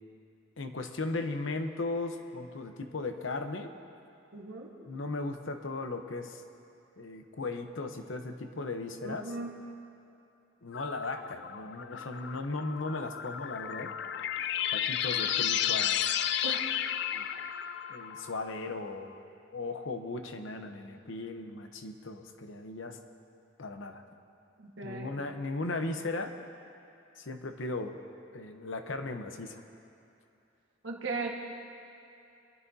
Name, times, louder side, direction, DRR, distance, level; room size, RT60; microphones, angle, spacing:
voice 1, 0.6-3.7 4.9-6.4 7.0-9.3 10.6-13.9 14.7-16.0 17.1-17.2 17.9-19.1 19.5-23.0 23.6-24.0 24.8-26.3 27.2-28.0 28.3-29.6, left 2 dB, 80° left, 6 dB, 0.9 m, -37 dB
voice 2, 4.3-4.7 9.0-9.5 16.4-16.7 24.6-25.1 30.8-31.3, right 3 dB, 85° right, -1 dB, 1.6 m, -37 dB
sound 1, 10.7-18.9, left 10 dB, 65° left, 0.5 m, -33 dB
24.0 x 12.5 x 2.7 m, 2.6 s
head